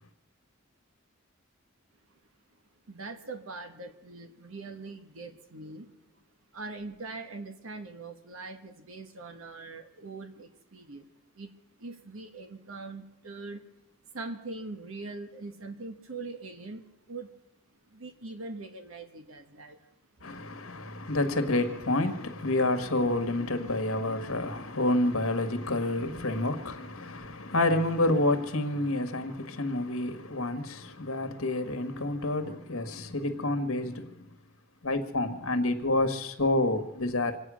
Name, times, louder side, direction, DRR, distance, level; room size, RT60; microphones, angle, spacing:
voice 1, 2.9-6.0 6.5-11.1 11.3-11.5 11.8-13.6 14.1-17.3 17.9-19.8, right 3 dB, 70° right, 1.3 m, -42 dB
voice 2, 20.2-34.3 34.8-37.4, left 2 dB, 70° left, 1.6 m, -29 dB
26.0 x 8.9 x 6.3 m
head